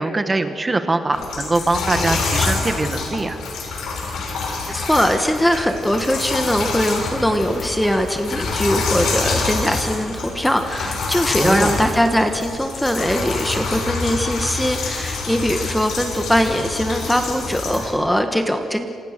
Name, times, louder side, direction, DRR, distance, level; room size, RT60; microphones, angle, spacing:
voice 1, 0.0-3.4 11.4-11.7, right 2 dB, 20° right, 8 dB, 1.4 m, -22 dB
sound 1, 1.1-17.9, left 4 dB, 80° left, 6.8 m, -26 dB
voice 2, 4.7-18.9, equal, 5° left, 6 dB, 1.2 m, -21 dB
28.0 x 27.5 x 6.7 m, 2.5 s
wide cardioid pair, 165°, 0 cm